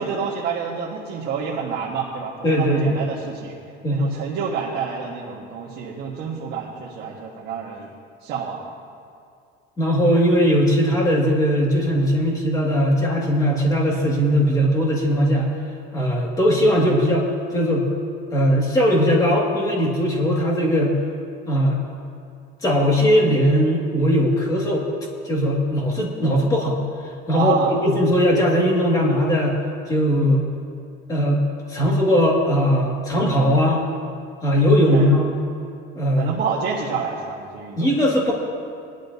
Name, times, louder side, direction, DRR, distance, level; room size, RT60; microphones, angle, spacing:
voice 1, 0.0-3.5 3.9-7.9 8.2-8.6 27.3-27.7 34.9-35.1 36.2-37.9, right 6 dB, 50° right, -4 dB, 1.6 m, -28 dB
voice 2, 2.4-3.0 3.8-4.0 9.8-15.5 15.9-17.3 17.5-17.9 18.3-21.0 21.5-21.8 22.6-24.8 25.2-26.8 27.3-29.6 29.9-30.4 31.1-31.4 31.7-33.8 34.4-35.3 35.9-36.3 37.8-38.3, equal, 15° left, -3 dB, 2.2 m, -19 dB
20.5 x 11.5 x 2.8 m, 2.4 s
cardioid pair, 165°, 21 cm